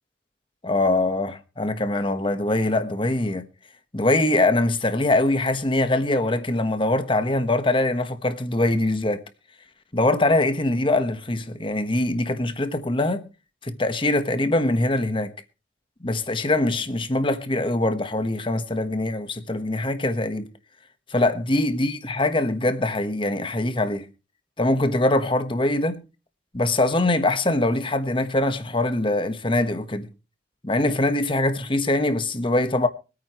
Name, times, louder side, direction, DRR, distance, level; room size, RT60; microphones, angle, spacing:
voice 1, 0.6-3.5 3.9-9.2 9.9-13.3 13.6-15.3 16.0-20.5 21.1-24.1 24.6-26.0 26.5-30.1 30.6-32.9, left 2 dB, 30° left, 1.2 m, -23 dB
24.5 x 9.2 x 3.1 m
head